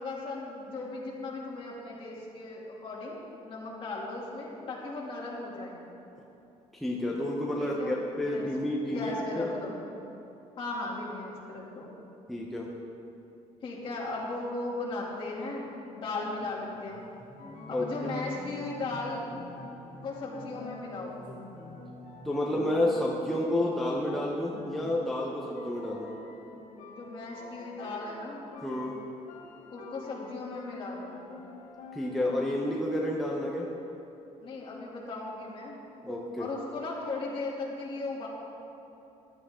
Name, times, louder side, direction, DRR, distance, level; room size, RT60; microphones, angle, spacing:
voice 1, 0.0-5.8 7.6-8.5 8.9-9.8 10.6-11.9 13.6-17.0 17.7-19.2 20.0-21.2 26.9-28.4 29.7-31.2 34.4-35.8 36.4-38.3, left 2 dB, 40° left, -5 dB, 2.8 m, -37 dB
voice 2, 6.7-9.5 12.3-12.7 17.7-17.9 22.2-26.1 28.6-29.0 31.9-33.7 36.0-36.5, left 1 dB, ahead, -4 dB, 0.9 m, -30 dB
sound 1, 16.6-25.0, right 1 dB, 40° right, 2.8 m, -49 dB
sound 2, 17.4-33.0, left 3 dB, 75° left, 1.7 m, -47 dB
15.0 x 11.5 x 3.8 m, 3.0 s
cardioid pair, 155°, 13 cm